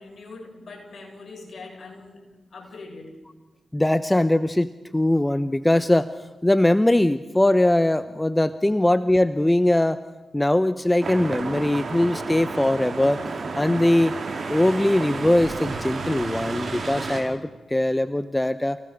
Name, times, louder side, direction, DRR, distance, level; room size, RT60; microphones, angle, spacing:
voice 1, 0.0-3.1, left 3 dB, 60° left, 1 dB, 7.6 m, -42 dB
voice 2, 3.7-6.1 6.4-10.0 10.3-13.2 13.6-14.1 14.5-18.8, left 1 dB, 15° left, 13 dB, 1.0 m, -21 dB
sound 1, 11.0-17.2, right 4 dB, 60° right, 4.7 m, -31 dB
30.0 x 18.0 x 6.7 m, 1.1 s
supercardioid pair, 40°, 0 cm